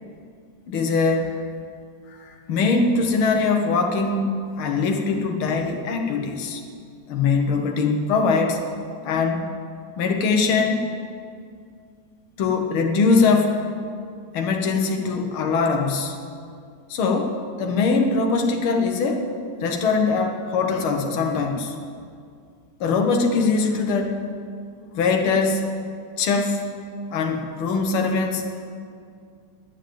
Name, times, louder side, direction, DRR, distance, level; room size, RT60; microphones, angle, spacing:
voice 1, 0.7-1.4 2.1-6.6 7.1-8.6 9.0-9.5 10.0-10.9 12.4-13.6 14.3-16.2 16.9-19.3 19.6-21.7 22.8-24.2 24.9-25.7 26.2-26.6 27.1-28.5, left 4 dB, 55° left, 3 dB, 1.6 m, -22 dB
10.5 x 7.3 x 9.2 m, 2.2 s
omnidirectional pair, 3.5 m